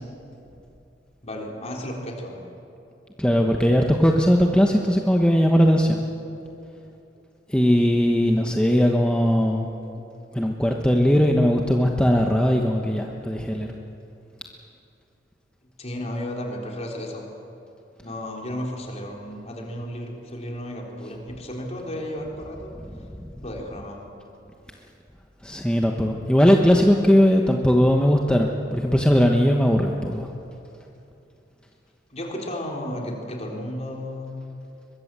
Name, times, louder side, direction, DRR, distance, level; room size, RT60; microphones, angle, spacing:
voice 1, 1.2-2.4 15.8-17.3 18.0-22.7 23.4-24.1 32.1-34.5, left 1 dB, 35° left, 0 dB, 3.7 m, -33 dB
voice 2, 3.2-6.0 7.5-9.7 10.3-13.7 22.8-23.3 25.4-30.3, equal, 5° left, 1 dB, 1.2 m, -19 dB
22.5 x 22.0 x 7.5 m, 2.7 s
head